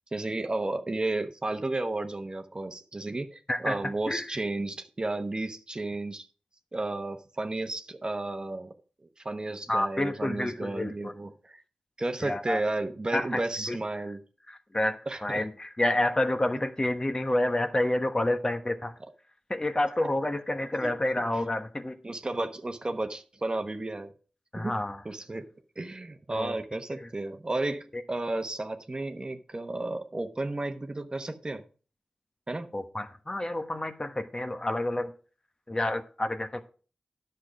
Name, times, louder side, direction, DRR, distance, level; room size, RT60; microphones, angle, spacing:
voice 1, 0.1-6.3 6.7-8.7 9.2-11.6 12.0-14.2 15.1-15.4 20.8-20.9 22.0-24.1 24.5-24.7 25.0-25.5 25.8-31.6 32.5-32.7, right 2 dB, 35° right, 7 dB, 1.0 m, -33 dB
voice 2, 3.5-4.4 9.7-11.1 12.2-12.6 13.1-13.8 14.5-18.9 19.5-22.0 24.5-25.0 26.3-26.6 27.0-27.1 32.7-35.1 35.7-36.6, left 1 dB, 30° left, 7 dB, 1.2 m, -29 dB
10.0 x 6.6 x 5.0 m, 0.39 s
cardioid pair, 45°, 3 cm